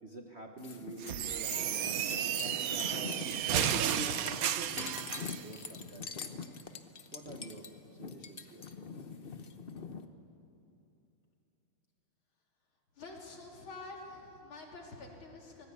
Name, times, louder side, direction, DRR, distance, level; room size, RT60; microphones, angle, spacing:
voice 1, 0.0-3.2 3.5-5.0 5.4-6.1 7.1-7.7 8.0-8.7, right 2 dB, 35° right, 2 dB, 1.4 m, -45 dB
sound 1, 0.6-10.1, left 5 dB, 45° left, 0.7 m, -44 dB
sound 2, 1.0-5.4, right 10 dB, 80° right, 0.7 m, -33 dB
voice 2, 12.9-15.7, left 3 dB, 65° left, 0 dB, 3.8 m, -48 dB
25.5 x 19.5 x 8.4 m, 2.9 s
omnidirectional pair, 2.4 m